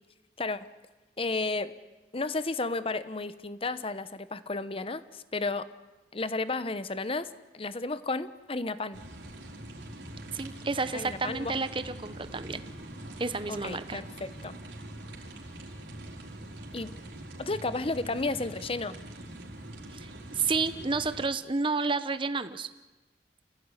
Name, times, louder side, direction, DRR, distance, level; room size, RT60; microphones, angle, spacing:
voice 1, 1.2-1.8 2.1-5.7 6.1-7.3 7.5-9.0 10.9-11.5 13.5-14.6 16.7-17.0 17.4-19.0, left 3 dB, 30° left, 14 dB, 1.0 m, -33 dB
sound 1, 8.9-21.3, right 1 dB, 75° right, 4.7 m, -44 dB
voice 2, 10.3-12.6 13.2-14.0 19.9-22.7, right 4 dB, 30° right, 12 dB, 1.0 m, -31 dB
28.5 x 16.5 x 9.8 m, 1.1 s
head